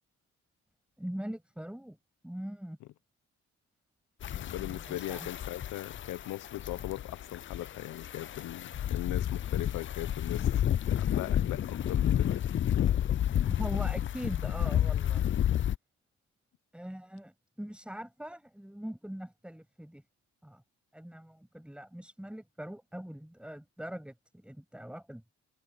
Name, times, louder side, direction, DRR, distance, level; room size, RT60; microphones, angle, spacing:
voice 1, 1.0-2.0 2.2-2.8 4.6-5.3 13.4-15.2 16.7-20.0 20.4-20.6 20.9-25.3, equal, 5° right, 7.3 m, -42 dB
sound 1, 4.2-15.8, left 10 dB, 40° left, 0.5 m, -30 dB
voice 2, 4.3-10.5 10.9-12.4 12.8-13.1, left 15 dB, 90° left, 1.0 m, -39 dB
cardioid pair, 90°, 30 cm